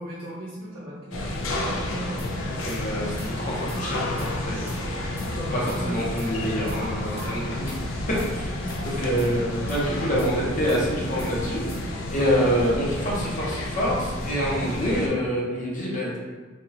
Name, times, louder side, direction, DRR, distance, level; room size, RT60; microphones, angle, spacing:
voice 1, 0.0-2.2 5.3-6.1, right 1 dB, 55° right, -9 dB, 0.6 m, -37 dB
sound 1, 1.1-15.1, left 1 dB, 75° left, 0.5 m, -30 dB
sound 2, 2.2-2.3 2.7-2.8 3.2-3.4 3.7-4.3 4.7-4.8 5.2-5.3 5.7-5.9 6.2-6.8 7.2-7.3 7.7-7.8 8.2-8.4 8.7-9.3 9.7-9.9 10.2-10.3 10.7-10.9 11.2-11.8, right 1 dB, 10° right, 0.5 m, -41 dB
voice 2, 2.6-7.7 8.3-16.2, equal, 40° left, -5 dB, 0.9 m, -27 dB
3.5 x 2.5 x 2.8 m, 1.3 s
head